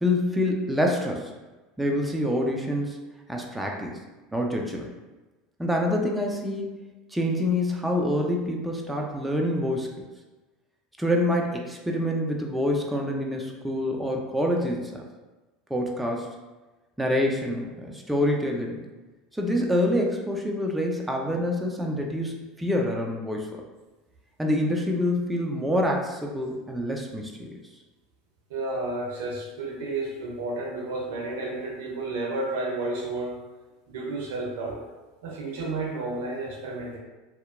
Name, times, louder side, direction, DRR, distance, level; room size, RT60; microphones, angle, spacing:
voice 1, 0.0-1.3 1.8-3.0 3.3-4.0 4.3-4.9 5.6-6.7 7.1-9.9 11.0-15.0 15.7-16.3 17.0-18.8 19.3-23.6 24.4-27.5, left 1 dB, 5° right, 0 dB, 0.4 m, -26 dB
voice 2, 28.5-33.3 33.9-34.8 35.2-37.0, right 2 dB, 75° right, -1 dB, 0.6 m, -31 dB
2.7 x 2.1 x 2.4 m, 1.2 s
hypercardioid pair, 80°, 0 cm